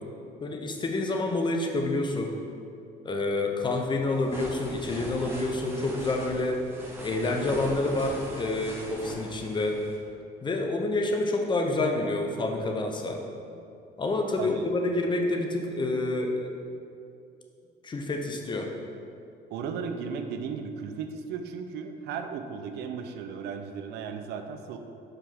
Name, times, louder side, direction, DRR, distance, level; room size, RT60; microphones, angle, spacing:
voice 1, 0.4-2.3 3.0-6.6 7.0-9.8 10.4-13.2 14.0-16.5 17.8-18.7, left 2 dB, 30° left, 3 dB, 0.8 m, -28 dB
sound 1, 4.1-10.0, right 1 dB, 15° right, 1.3 m, -40 dB
voice 2, 19.5-24.8, right 6 dB, 80° right, 6 dB, 0.5 m, -35 dB
5.0 x 4.9 x 5.7 m, 2.6 s
cardioid pair, 110°, 17 cm